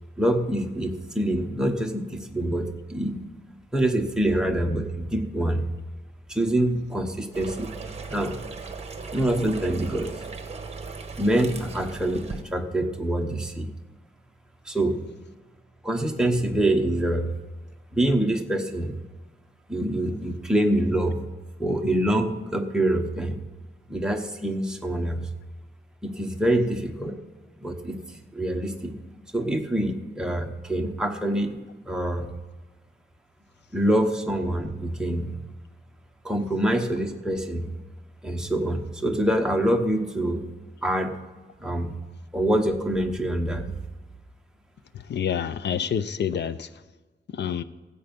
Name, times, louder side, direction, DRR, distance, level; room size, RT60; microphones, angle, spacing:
voice 1, 0.2-3.3 3.7-5.7 6.3-7.7 8.1-8.4 9.1-10.1 11.2-13.7 14.7-15.0 15.8-17.3 17.9-19.0 19.7-21.2 21.6-23.4 23.9-25.3 26.0-27.2 27.6-28.0 28.3-29.0 29.3-31.6 31.9-32.3 33.7-35.4 36.2-37.7 38.2-40.4 40.8-41.2 41.6-41.9 42.3-43.7, right 1 dB, 5° right, 3 dB, 1.0 m, -25 dB
sound 1, 7.3-12.4, right 4 dB, 30° right, 1.1 m, -37 dB
voice 2, 44.9-46.7 47.3-47.6, left 8 dB, 60° left, 14 dB, 0.6 m, -28 dB
15.0 x 8.1 x 5.2 m, 1.3 s
wide cardioid pair, 165°, 20 cm